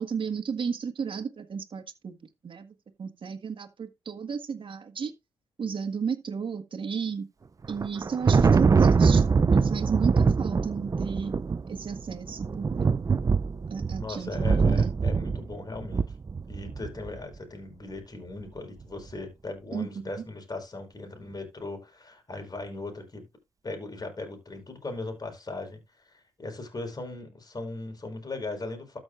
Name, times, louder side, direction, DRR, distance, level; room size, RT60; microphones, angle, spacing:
voice 1, 0.0-2.2 2.4-5.1 5.6-7.3 7.7-11.3 11.7-13.1 13.7-14.9 19.7-19.9 20.2-20.3, right 6 dB, 50° right, 1.6 m, -33 dB
Thunder, 7.6-17.1, right 5 dB, 30° right, 0.5 m, -23 dB
voice 2, 14.0-16.1 16.5-23.3 23.6-29.0, left 2 dB, 35° left, 4.6 m, -38 dB
13.0 x 6.4 x 2.5 m
supercardioid pair, 60°, 11 cm